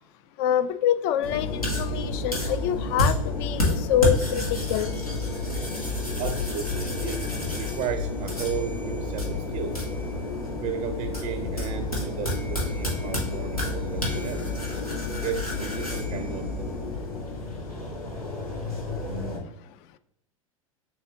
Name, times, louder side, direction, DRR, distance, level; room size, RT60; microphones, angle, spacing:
voice 1, 0.4-4.9, left 9 dB, 45° left, 13 dB, 0.4 m, -26 dB
sound 1, 1.2-19.4, left 2 dB, 90° left, 1.3 m, -29 dB
voice 2, 6.2-7.2 7.6-9.7 10.6-14.5 15.2-16.9, right 9 dB, 30° right, 8 dB, 0.4 m, -34 dB
6.3 x 2.6 x 2.7 m, 0.78 s
figure-of-eight pair, 85°, 18 cm